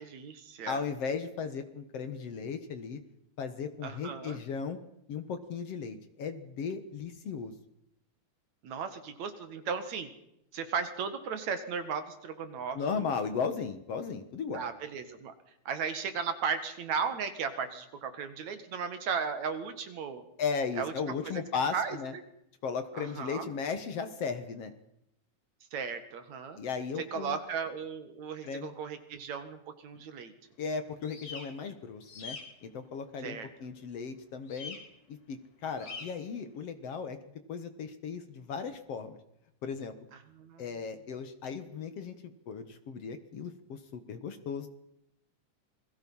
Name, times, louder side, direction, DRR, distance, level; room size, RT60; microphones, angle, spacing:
voice 1, 0.0-0.8 3.8-4.4 8.6-10.1 10.5-13.0 14.5-15.3 15.7-20.2 20.8-20.9 21.7-22.0 22.9-23.5 25.7-26.6 27.1-30.3 33.2-33.5 35.8-36.0 40.4-40.6, right 6 dB, 65° right, 9 dB, 3.0 m, -36 dB
voice 2, 0.7-3.0 3.4-4.8 5.1-7.5 12.7-14.7 20.4-22.1 22.6-24.7 26.6-27.4 28.4-28.8 29.9-30.0 30.6-34.8 35.1-37.2 37.5-39.2 39.6-40.0 40.6-44.7, left 5 dB, 55° left, 9 dB, 2.3 m, -36 dB
sound 1, 31.0-31.4 32.0-32.4 34.5-34.8 35.8-36.1, left 4 dB, 80° left, 5.5 m, -42 dB
28.0 x 21.5 x 5.6 m, 0.80 s
omnidirectional pair, 3.6 m